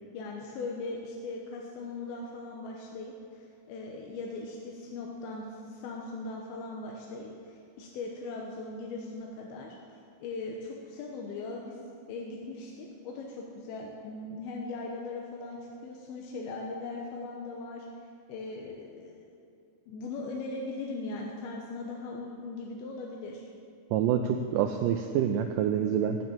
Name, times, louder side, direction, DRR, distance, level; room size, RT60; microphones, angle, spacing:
voice 1, 0.0-9.8 10.2-11.8 12.1-17.9 18.3-19.3 19.9-23.4, left 3 dB, 85° left, -1 dB, 2.9 m, -39 dB
voice 2, 23.9-26.2, right 9 dB, 85° right, 6 dB, 1.9 m, -27 dB
9.6 x 9.3 x 7.5 m, 2.3 s
omnidirectional pair, 4.3 m